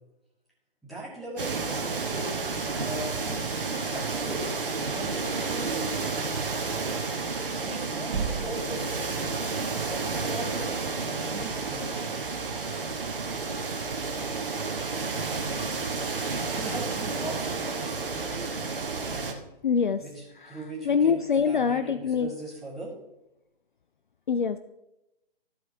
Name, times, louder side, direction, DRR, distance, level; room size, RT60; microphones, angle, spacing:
voice 1, 0.8-2.4 2.8-4.5 4.9-6.2 7.6-9.3 9.9-12.0 16.5-18.5 18.9-19.4 20.0-22.9, right 1 dB, ahead, -7 dB, 2.0 m, -40 dB
sound 1, 1.4-19.3, right 4 dB, 60° right, 1.3 m, -31 dB
Knock, 8.1-8.8, right 6 dB, 45° right, 2.1 m, -31 dB
voice 2, 19.6-20.0 20.8-22.3 24.3-24.6, left 6 dB, 55° left, 12 dB, 0.4 m, -24 dB
13.5 x 4.6 x 4.3 m, 0.92 s
figure-of-eight pair, 135°, 30 cm